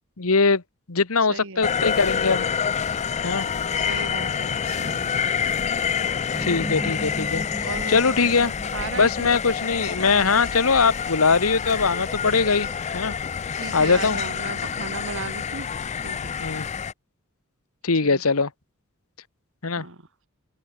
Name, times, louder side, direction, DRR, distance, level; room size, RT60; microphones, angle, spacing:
voice 1, 0.2-0.6 0.9-2.5 3.2-3.5 6.4-8.5 9.0-12.7 12.9-13.1 13.7-14.2 16.4-16.7 17.8-18.5 19.6-19.8, left 4 dB, 75° left, 1.3 m, -21 dB
voice 2, 1.3-1.7 3.7-5.2 7.6-8.1 8.7-9.3 10.1-10.6 13.6-15.7 16.0-16.3 18.0-18.2 19.8-20.0, right 3 dB, 65° right, 2.9 m, -36 dB
sound 1, 1.6-16.9, left 7 dB, 30° left, 0.4 m, -27 dB
sound 2, 6.3-11.0, equal, ahead, 0.7 m, -37 dB
Laughter, 6.9-15.3, right 2 dB, 15° right, 2.5 m, -45 dB
head